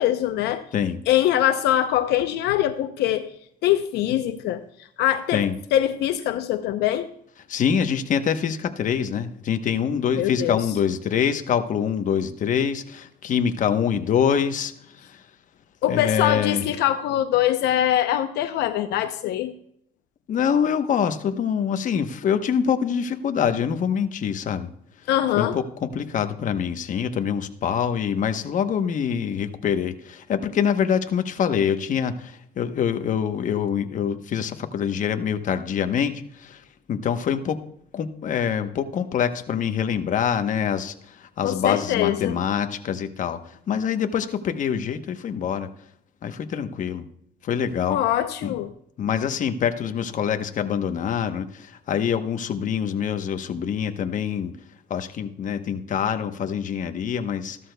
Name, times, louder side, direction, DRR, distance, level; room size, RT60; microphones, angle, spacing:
voice 1, 0.0-0.6 1.1-3.3 3.6-5.4 5.7-7.1 10.1-10.6 15.8-19.5 25.1-25.6 41.4-42.4 47.9-48.7, left 12 dB, 80° left, 9 dB, 0.7 m, -23 dB
voice 2, 7.5-15.2 15.9-16.6 20.3-24.7 25.4-37.6 37.9-45.7 46.2-47.1 47.4-48.0 48.4-48.6 49.0-54.5 54.9-57.6, left 8 dB, 50° left, 8 dB, 1.0 m, -25 dB
14.0 x 13.0 x 2.3 m, 0.69 s
cardioid pair, 110°, 17 cm